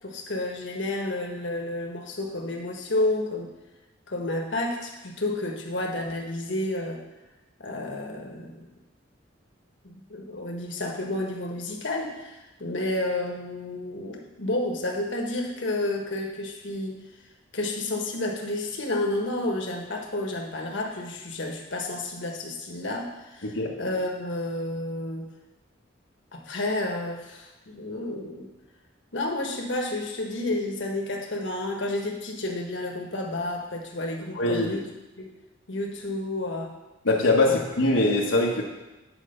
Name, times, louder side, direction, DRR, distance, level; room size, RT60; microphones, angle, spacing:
voice 1, 0.0-3.5 4.1-7.0 7.6-8.7 9.8-17.0 17.5-25.3 26.3-28.5 29.1-34.9 35.2-35.3 35.7-36.7 37.4-37.6, left 2 dB, 70° left, 1 dB, 1.3 m, -31 dB
voice 2, 23.4-23.7 34.3-34.7 37.0-38.6, left 2 dB, 85° left, -2 dB, 1.2 m, -22 dB
9.2 x 4.8 x 6.6 m, 1.1 s
head